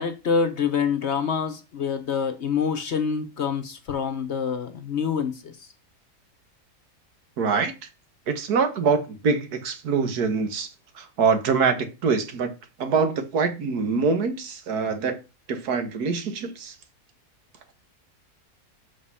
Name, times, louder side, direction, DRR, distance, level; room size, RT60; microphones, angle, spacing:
voice 1, 0.0-5.5, left 6 dB, 50° left, 1.0 m, -26 dB
voice 2, 7.4-7.7 8.3-10.7 10.9-12.5 12.8-15.2 15.5-16.7, right 5 dB, 80° right, 1.7 m, -24 dB
6.1 x 5.2 x 5.5 m
omnidirectional pair, 1.6 m